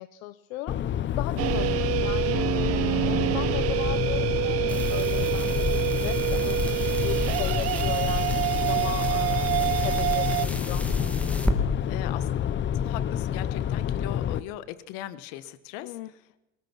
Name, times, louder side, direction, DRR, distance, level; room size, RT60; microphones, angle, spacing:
voice 1, 0.0-10.9 15.8-16.1, left 15 dB, 90° left, 13 dB, 1.0 m, -37 dB
sound 1, 0.7-14.4, left 9 dB, 30° left, 0.7 m, -28 dB
sound 2, 1.4-10.5, right 16 dB, 40° right, 0.6 m, -27 dB
sound 3, 4.7-11.5, equal, 5° left, 2.2 m, -34 dB
voice 2, 11.9-12.3 12.7-16.0, left 13 dB, 70° left, 14 dB, 1.6 m, -39 dB
22.0 x 20.0 x 6.1 m, 0.95 s
supercardioid pair, 130°, 39 cm